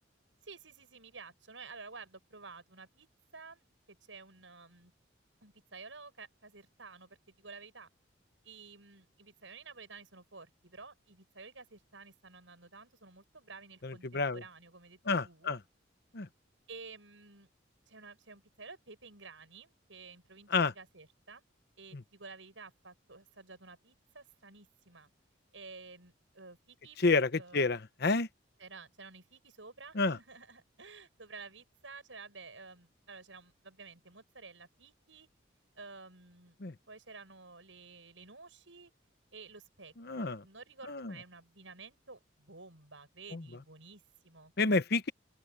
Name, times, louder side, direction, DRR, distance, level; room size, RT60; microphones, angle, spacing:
voice 1, 0.4-3.1 3.3-4.9 5.4-7.9 8.4-15.6 16.7-17.5 17.9-21.4 21.8-25.1 25.5-27.0 27.4-27.7 28.6-35.3 35.8-36.6 36.9-38.9 39.3-44.5, right 4 dB, 75° right, 7.6 m, -52 dB
voice 2, 13.8-14.4 15.1-15.6 16.1-16.3 20.5-20.7 27.0-28.3 30.0-30.2 36.6-36.7 40.0-40.4 40.9-41.1 43.3-43.4 44.6-45.1, left 3 dB, 55° left, 1.0 m, -29 dB
open air
head